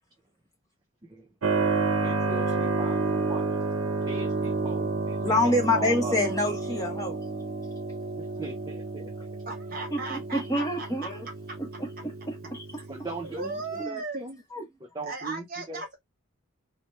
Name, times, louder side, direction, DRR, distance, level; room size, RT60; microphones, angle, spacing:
voice 1, 1.1-1.6 2.0-3.4 4.1-5.2 5.4-6.2 8.2-9.3 12.9-14.4 14.9-15.9, right 2 dB, 20° right, 0.4 m, -39 dB
Keyboard (musical), 1.4-13.8, right 3 dB, 75° right, 0.6 m, -30 dB
voice 2, 5.2-7.2 9.9-11.2 11.8-12.8 13.8-14.0 14.5-14.6, left 1 dB, 15° left, 1.0 m, -27 dB
voice 3, 9.5-10.9 13.2-14.3 15.0-15.9, right 3 dB, 45° right, 0.9 m, -36 dB
2.9 x 2.1 x 3.0 m
head